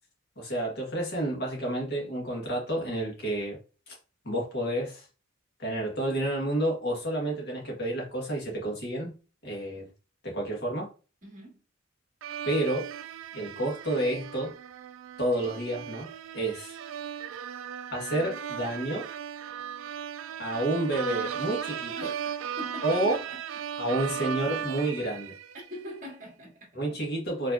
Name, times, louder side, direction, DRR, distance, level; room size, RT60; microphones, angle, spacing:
voice 1, 0.4-3.6 3.9-4.0 4.2-5.1 5.6-9.1 9.4-9.9 10.2-10.9 12.4-12.9 13.3-14.5 15.2-16.1 16.3-16.8 17.9-19.1 20.4-21.9 22.8-23.2 23.8-25.3 26.7-27.5, right 1 dB, 50° left, 1.6 m, -30 dB
voice 2, 11.2-11.6 22.0-23.4 25.5-26.8, equal, 40° right, 1.8 m, -43 dB
sound 1, 12.2-25.9, right 8 dB, 70° right, 0.3 m, -37 dB
4.9 x 3.2 x 2.6 m
head